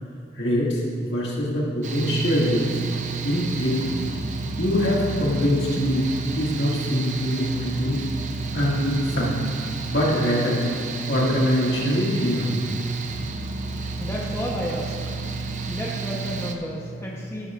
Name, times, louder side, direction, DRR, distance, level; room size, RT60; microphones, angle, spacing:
voice 1, 0.3-2.8 3.2-4.1 4.6-8.0 8.5-9.5 9.9-10.6 11.1-12.6, equal, 70° left, -4 dB, 2.1 m, -23 dB
Mechanical fan, 1.8-16.6, right 4 dB, 40° right, 0.7 m, -30 dB
voice 2, 14.0-15.2 15.7-17.5, equal, 15° left, -3 dB, 1.0 m, -31 dB
12.5 x 12.0 x 2.5 m, 2.3 s
head